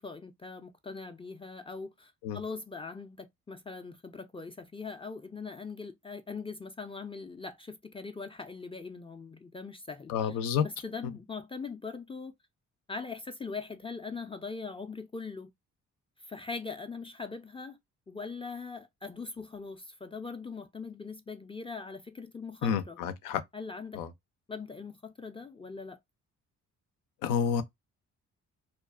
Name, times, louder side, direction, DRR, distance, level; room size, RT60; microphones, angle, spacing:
voice 1, 0.0-10.4 10.8-12.3 12.9-15.5 16.2-17.8 18.1-23.0 23.5-24.0 24.5-26.0, left 4 dB, 15° left, 0.4 m, -41 dB
voice 2, 10.1-10.6 22.6-23.4 23.9-24.1 27.2-27.6, left 7 dB, 90° left, 0.5 m, -29 dB
2.4 x 2.3 x 2.2 m
supercardioid pair, 65°, 32 cm